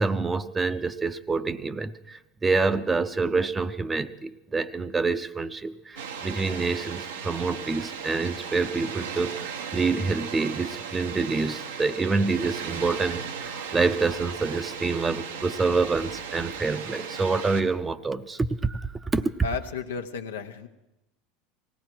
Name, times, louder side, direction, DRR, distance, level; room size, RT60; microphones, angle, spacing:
voice 1, 0.0-19.2, right 4 dB, 20° right, 13 dB, 0.7 m, -27 dB
Water, 6.0-17.6, right 6 dB, 80° right, 1.0 m, -36 dB
voice 2, 19.4-20.7, left 6 dB, 85° left, 6 dB, 1.0 m, -33 dB
19.0 x 16.0 x 4.6 m, 0.94 s
hypercardioid pair, 80°, 0 cm